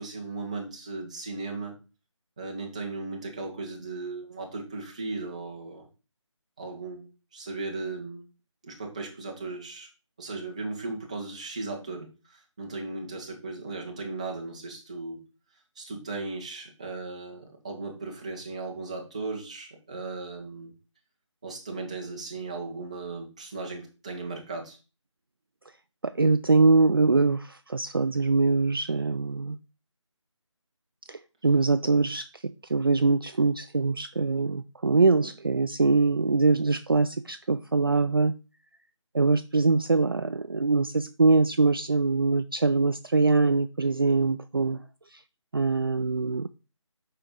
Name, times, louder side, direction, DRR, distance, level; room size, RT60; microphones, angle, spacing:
voice 1, 0.0-1.8 2.4-5.9 6.6-8.2 8.6-9.9 10.2-15.2 15.8-20.7 21.4-24.8, right 3 dB, 15° right, 0.9 m, -37 dB
voice 2, 26.0-29.6 31.4-32.3 32.7-38.3 39.1-44.8 45.5-46.5, right 3 dB, 45° right, 0.4 m, -23 dB
7.5 x 5.5 x 3.7 m
figure-of-eight pair, 175°, 16 cm